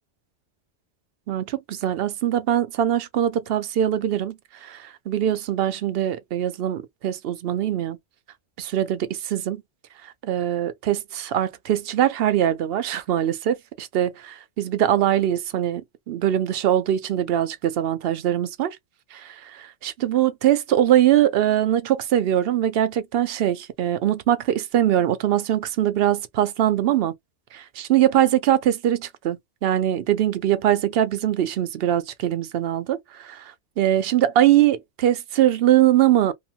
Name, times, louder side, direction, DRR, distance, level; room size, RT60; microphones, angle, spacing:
voice 1, 1.3-8.0 8.6-9.6 10.0-18.8 19.1-27.1 27.5-36.3, right 11 dB, 65° right, 0.7 m, -22 dB
2.8 x 2.1 x 2.7 m
omnidirectional pair, 1.2 m